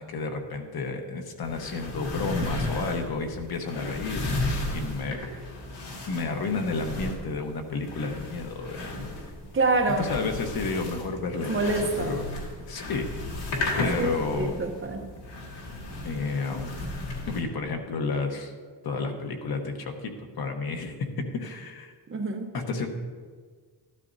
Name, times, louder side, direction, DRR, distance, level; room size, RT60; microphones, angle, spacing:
voice 1, 0.0-5.2 6.1-9.0 10.0-12.2 12.7-13.2 13.8-14.5 16.0-16.7 17.3-18.5 18.8-21.1 21.3-21.9 22.5-22.9, left 4 dB, 65° left, 4 dB, 1.3 m, -31 dB
sound 1, 1.4-17.4, left 2 dB, 85° left, 2.3 m, -34 dB
voice 2, 9.5-10.1 11.5-12.1 14.0-14.1 14.4-15.0 22.1-22.5, right 3 dB, 30° right, 4 dB, 0.8 m, -26 dB
13.0 x 12.0 x 2.7 m, 1.5 s
wide cardioid pair, 165°, 40 cm